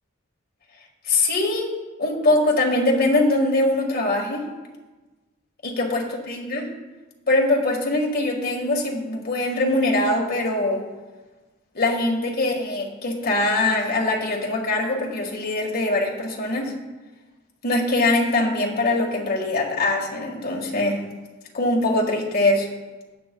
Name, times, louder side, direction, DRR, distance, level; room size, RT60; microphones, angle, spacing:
voice 1, 1.0-1.7 2.0-4.4 5.6-6.7 7.3-10.8 11.7-16.7 17.6-21.0 21.5-22.7, left 2 dB, 50° left, 0 dB, 1.7 m, -22 dB
17.0 x 8.7 x 2.3 m, 1.2 s
head